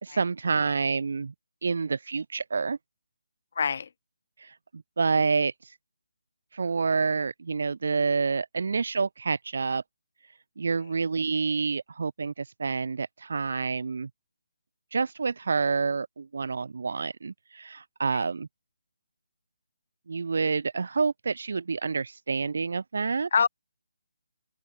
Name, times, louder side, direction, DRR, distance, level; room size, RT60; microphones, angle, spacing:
voice 1, 0.0-1.3 1.6-2.8 4.4-4.6 5.0-5.7 6.5-9.8 10.6-14.1 14.9-18.5 20.1-23.3, right 4 dB, 60° right, 0.3 m, -28 dB
voice 2, 3.6-3.9 18.1-18.3 23.3-23.5, left 6 dB, 50° left, 1.9 m, -25 dB
figure-of-eight pair, 150°, 0 cm